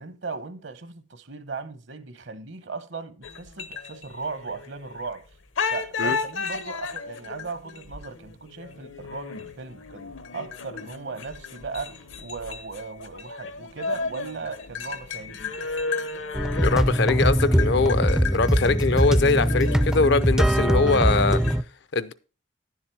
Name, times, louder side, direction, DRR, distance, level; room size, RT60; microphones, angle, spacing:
voice 1, 0.0-5.2 5.7-15.6, right 4 dB, 60° right, 0.9 m, -37 dB
sound 1, 3.2-5.2 5.6-21.6, left 5 dB, 75° left, 1.0 m, -34 dB
sound 2, 16.3-21.6, equal, 5° right, 0.4 m, -22 dB
voice 2, 16.5-21.4 21.9-22.1, left 3 dB, 55° left, 0.5 m, -22 dB
10.5 x 7.3 x 4.5 m
head